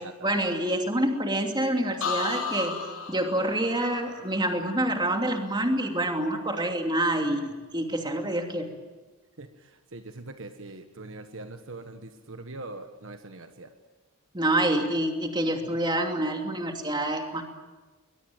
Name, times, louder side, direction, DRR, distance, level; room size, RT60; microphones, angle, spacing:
voice 1, 0.2-2.8 3.1-8.7 14.3-17.4, right 1 dB, 20° right, 3 dB, 2.8 m, -27 dB
sound 1, 2.0-5.8 6.2-6.7, left 4 dB, 60° left, 5.2 m, -35 dB
voice 2, 9.4-13.7, right 2 dB, 60° right, 7 dB, 1.4 m, -42 dB
21.5 x 21.5 x 9.1 m, 1.2 s
head